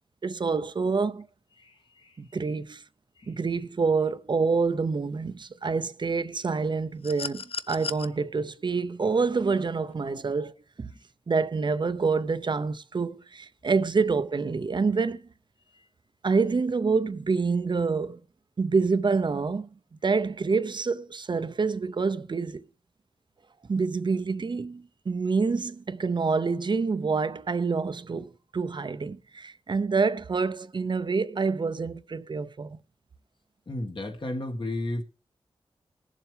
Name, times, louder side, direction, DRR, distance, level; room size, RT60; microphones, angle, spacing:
voice 1, 0.2-1.3 2.2-2.8 3.3-10.9 11.3-15.2 16.2-18.2 18.6-19.7 20.0-22.6 23.7-32.8, right 4 dB, 50° right, 0.7 m, -27 dB
voice 2, 1.6-2.2 3.2-3.3 10.9-11.0 15.7-15.9 33.7-35.0, left 1 dB, 50° left, 1.8 m, -34 dB
sound 1, 7.0-8.1 9.6-9.7, left 5 dB, 65° left, 0.6 m, -35 dB
21.5 x 7.4 x 3.4 m
wide cardioid pair, 80°, 10 cm